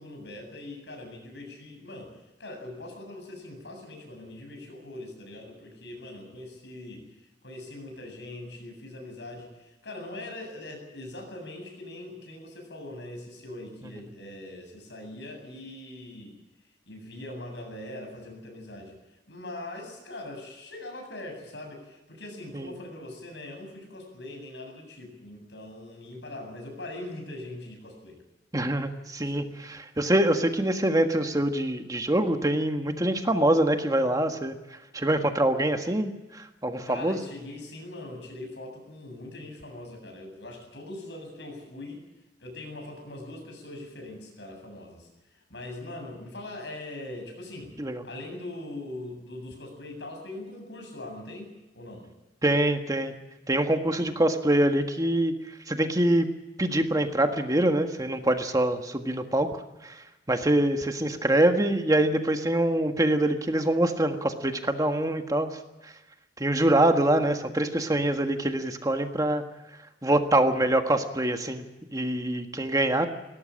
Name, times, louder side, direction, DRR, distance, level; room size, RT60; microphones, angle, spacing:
voice 1, 0.0-16.3 16.9-19.0 19.3-28.2 29.2-29.3 36.8-42.0 42.4-52.1, left 1 dB, 80° left, 3 dB, 8.0 m, -41 dB
voice 2, 28.5-34.5 34.9-37.2 47.8-48.0 52.4-53.1 53.5-55.3 55.7-56.3 56.6-65.9 66.4-69.4 70.0-71.6 71.9-73.1, right 1 dB, 20° right, 6 dB, 1.6 m, -25 dB
20.5 x 17.5 x 8.7 m, 1.0 s
head